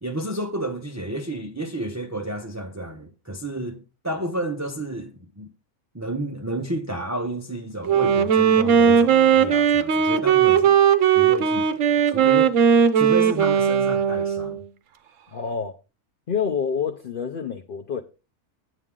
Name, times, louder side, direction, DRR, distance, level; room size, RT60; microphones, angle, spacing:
voice 1, 0.0-5.5 5.9-10.7 11.1-12.6 12.9-14.6, right 1 dB, 25° right, 0.4 m, -31 dB
Wind instrument woodwind instrument, 7.9-14.6, right 7 dB, 65° right, 1.0 m, -18 dB
voice 2, 15.3-15.8 16.3-18.0, left 6 dB, 50° left, 0.7 m, -27 dB
9.0 x 8.1 x 3.7 m
omnidirectional pair, 1.6 m